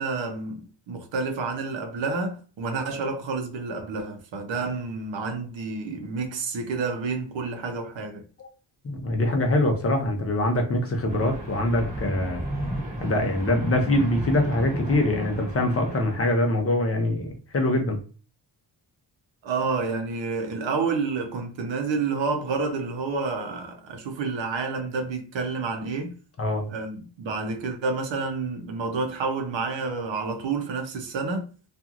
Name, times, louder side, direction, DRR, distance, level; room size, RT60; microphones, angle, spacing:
voice 1, 0.0-8.2 19.4-26.1 26.7-31.5, right 4 dB, 85° right, 0.8 m, -29 dB
voice 2, 8.8-12.4 13.0-18.0 26.4-26.7, left 1 dB, 35° left, 0.6 m, -24 dB
sound 1, 11.1-16.2, right 1 dB, 15° right, 1.0 m, -34 dB
2.9 x 2.5 x 2.4 m
wide cardioid pair, 170°, 44 cm